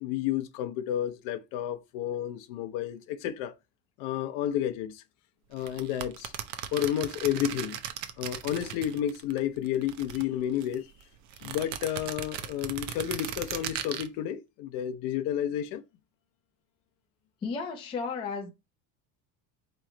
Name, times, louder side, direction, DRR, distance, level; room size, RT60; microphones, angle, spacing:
voice 1, 0.0-3.5 4.0-5.0 5.5-6.3 6.7-7.8 8.2-10.9 11.4-15.8, left 11 dB, 55° left, 0.6 m, -31 dB
sound 1, 5.6-9.4 9.7-10.8 11.3-14.1, right 10 dB, 50° right, 0.6 m, -37 dB
voice 2, 17.4-18.5, left 4 dB, 15° left, 0.4 m, -33 dB
4.3 x 3.1 x 3.7 m
cardioid pair, 180°, 39 cm